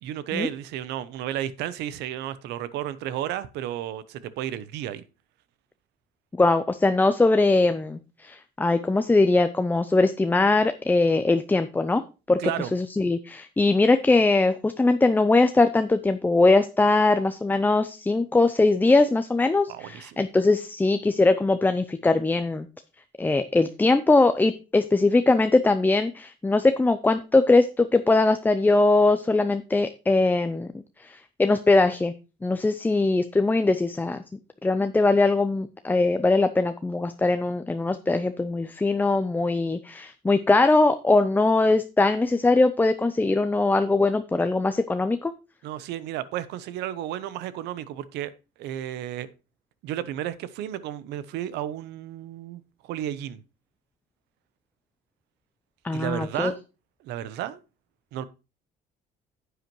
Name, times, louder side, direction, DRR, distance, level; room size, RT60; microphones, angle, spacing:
voice 1, 0.0-5.0 12.4-12.7 19.7-20.2 45.6-48.3 48.6-49.3 49.8-53.4 55.9-56.6 57.0-57.6 58.1-58.2, right 12 dB, 85° right, 0.8 m, -33 dB
voice 2, 6.3-12.0 12.3-12.4 12.7-22.7 23.2-30.7 31.0-32.1 32.4-34.2 34.6-45.3 55.8-56.5, left 3 dB, 10° left, 0.5 m, -21 dB
9.9 x 8.0 x 3.0 m
cardioid pair, 110°, 17 cm